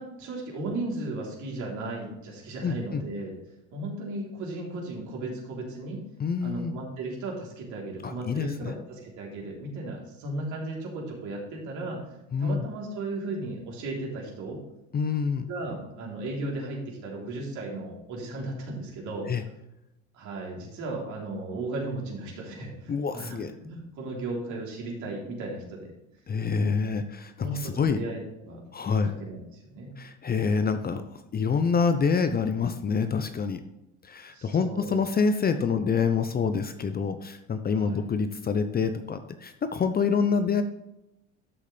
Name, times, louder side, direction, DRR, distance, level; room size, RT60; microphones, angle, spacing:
voice 1, 0.0-3.3 3.7-6.1 6.4-12.0 12.4-14.6 15.5-19.3 20.1-25.9 27.4-28.6 29.0-29.9 34.3-35.0 37.7-38.0, right 2 dB, 55° right, -2 dB, 3.7 m, -35 dB
voice 2, 2.6-3.0 6.2-6.7 8.0-8.7 12.3-12.7 14.9-15.5 19.3-19.4 22.9-23.5 26.3-28.0 28.7-29.1 30.0-31.0 31.3-33.6 34.0-40.6, left 5 dB, 25° left, 9 dB, 0.8 m, -26 dB
13.0 x 6.6 x 3.4 m, 0.87 s
hypercardioid pair, 75°, 36 cm